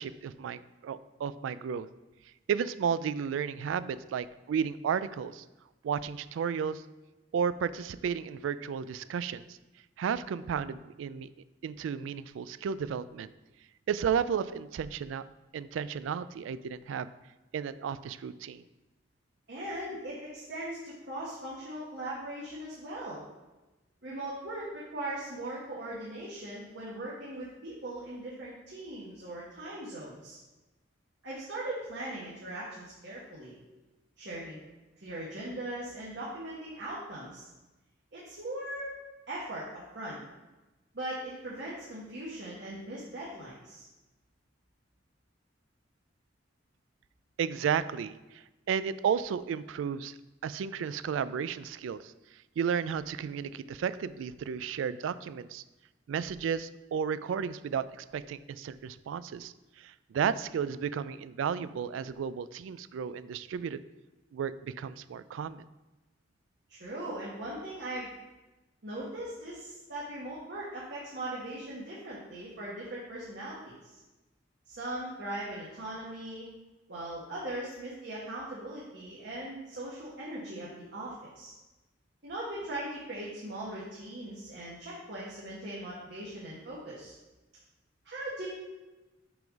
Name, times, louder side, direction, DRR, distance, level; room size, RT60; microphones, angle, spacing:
voice 1, 0.0-1.9 2.5-5.4 5.8-6.8 7.3-9.6 10.0-11.3 11.6-13.3 13.9-15.2 15.5-17.1 17.5-18.6 47.4-50.2 50.4-52.1 52.6-55.6 56.1-63.8 64.3-65.6, right 7 dB, 85° right, 16 dB, 0.3 m, -33 dB
voice 2, 19.5-23.2 24.0-30.4 31.2-33.6 34.2-34.6 35.0-37.5 38.1-38.9 39.3-40.2 40.9-43.8 66.7-68.1 68.8-74.0 74.7-76.5 76.9-81.5 82.2-87.1 88.0-88.5, right 1 dB, 60° right, -7 dB, 1.3 m, -39 dB
5.8 x 3.8 x 5.1 m, 1.1 s
head